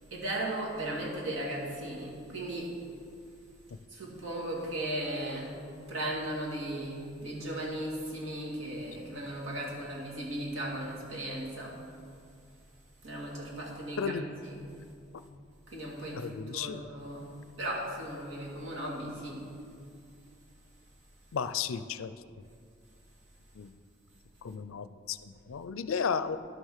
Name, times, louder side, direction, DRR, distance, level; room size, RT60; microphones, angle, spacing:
voice 1, 0.1-2.8 3.9-5.6 5.9-11.8 13.0-14.2 14.4-14.7 15.7-19.5, right 1 dB, 75° right, -3 dB, 2.5 m, -36 dB
voice 2, 16.2-16.8 21.3-22.1 23.6-23.7 24.4-26.4, left 6 dB, 80° left, 12 dB, 0.4 m, -34 dB
11.5 x 6.5 x 6.5 m, 2.3 s
head